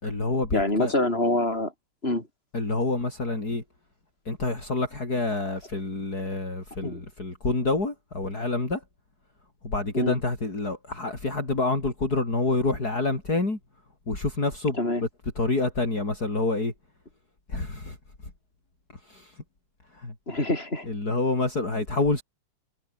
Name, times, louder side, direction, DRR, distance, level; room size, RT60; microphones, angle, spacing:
voice 1, 0.0-0.9 2.5-3.6 4.3-8.8 9.6-13.6 14.1-15.1 15.4-16.7 17.5-18.0 19.0-19.4 19.9-20.1 20.9-22.2, left 3 dB, 45° left, 5.8 m, -27 dB
voice 2, 0.5-1.7 2.0-2.3 6.8-7.0 9.9-10.1 14.8-15.0 20.3-20.9, left 1 dB, 25° left, 7.9 m, -25 dB
omnidirectional pair, 2.4 m